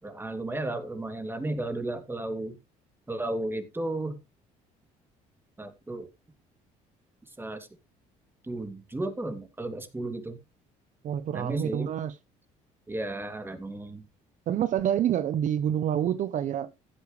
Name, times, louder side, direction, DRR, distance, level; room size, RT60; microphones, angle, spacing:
voice 1, 0.0-2.5 3.1-4.2 5.6-6.1 7.4-7.7 8.4-10.4 11.3-11.9 12.9-14.0, right 2 dB, 15° right, 2.9 m, -34 dB
voice 2, 11.0-12.2 14.5-16.7, right 10 dB, 55° right, 0.8 m, -27 dB
15.5 x 8.3 x 3.3 m
supercardioid pair, 80°, 15 cm